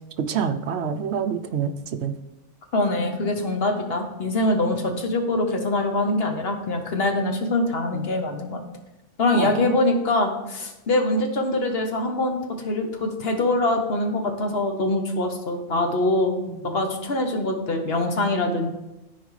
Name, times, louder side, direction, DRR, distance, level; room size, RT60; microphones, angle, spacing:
voice 1, 0.2-2.1 4.9-5.0 7.9-8.0 9.4-9.6 16.6-16.8, right 7 dB, 65° right, 8 dB, 0.8 m, -27 dB
voice 2, 2.7-8.6 9.2-16.3 16.6-18.7, left 2 dB, 55° left, 4 dB, 1.2 m, -24 dB
14.0 x 4.7 x 3.2 m, 1.0 s
omnidirectional pair, 1.3 m